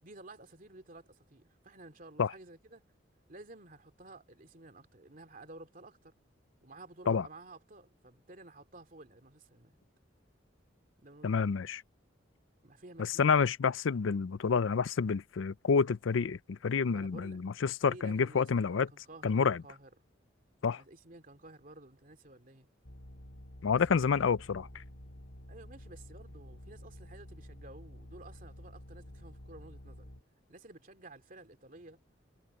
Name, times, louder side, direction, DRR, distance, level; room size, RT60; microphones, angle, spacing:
voice 1, 0.0-2.8 3.3-6.1 6.6-9.8 11.0-11.6 12.6-13.3 16.9-17.4 17.8-19.9 20.7-22.7 23.7-24.5 25.5-30.1 30.5-32.0, right 2 dB, 45° right, 2.8 m, -53 dB
voice 2, 11.2-11.8 13.0-18.9 19.2-19.6 20.6-20.8 23.6-24.8, left 5 dB, 90° left, 0.5 m, -29 dB
sound 1, 22.8-30.2, equal, 75° left, 2.6 m, -50 dB
head